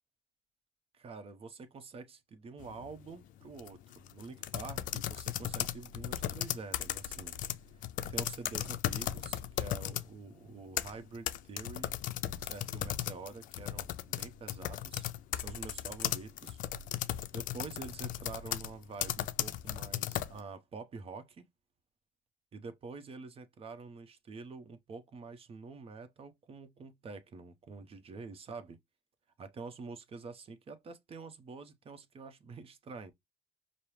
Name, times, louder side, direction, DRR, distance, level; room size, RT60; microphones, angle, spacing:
voice 1, 0.9-7.3 8.1-12.0 12.4-15.0 15.3-16.6 17.3-21.5 22.5-28.8 29.4-33.1, right 4 dB, 45° right, 0.9 m, -47 dB
sound 1, 2.6-2.9 3.5-10.1 10.5-20.4, left 13 dB, 70° left, 0.4 m, -36 dB
5.2 x 2.0 x 3.2 m
supercardioid pair, 70°, 14 cm